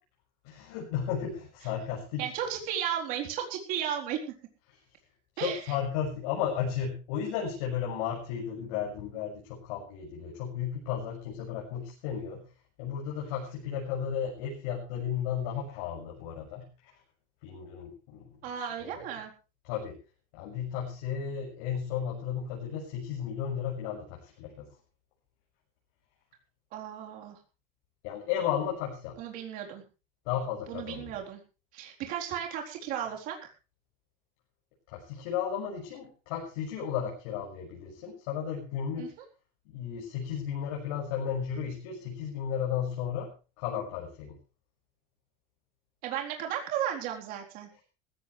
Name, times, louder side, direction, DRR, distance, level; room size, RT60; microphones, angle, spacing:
voice 1, 0.4-2.5 4.7-4.8 5.3-12.4 12.8-16.7 17.4-19.1 19.6-20.0 20.3-24.7 28.0-29.2 30.2-31.2 34.9-39.1 39.6-43.3 43.6-44.3, left 8 dB, 80° left, -3 dB, 6.8 m, -34 dB
voice 2, 2.2-4.2 5.4-5.6 18.4-19.3 26.7-27.4 29.2-29.8 30.7-31.4 31.7-33.5 39.0-39.1 46.0-47.7, right 9 dB, 50° right, 1 dB, 4.1 m, -34 dB
19.0 x 16.0 x 3.4 m, 0.33 s
cardioid pair, 175°, 19 cm